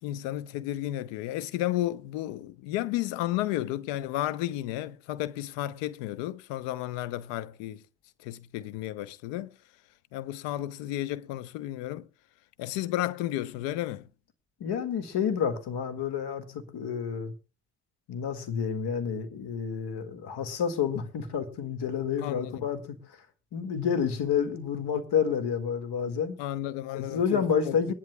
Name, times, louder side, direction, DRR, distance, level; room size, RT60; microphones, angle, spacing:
voice 1, 0.0-7.8 8.2-9.5 10.1-12.1 12.6-14.1 22.2-22.7 26.4-27.9, left 14 dB, 80° left, 0.7 m, -33 dB
voice 2, 14.6-17.3 18.1-23.2 23.5-26.4 26.9-27.9, left 7 dB, 65° left, 1.9 m, -29 dB
23.5 x 11.0 x 2.2 m
hypercardioid pair, 45°, 42 cm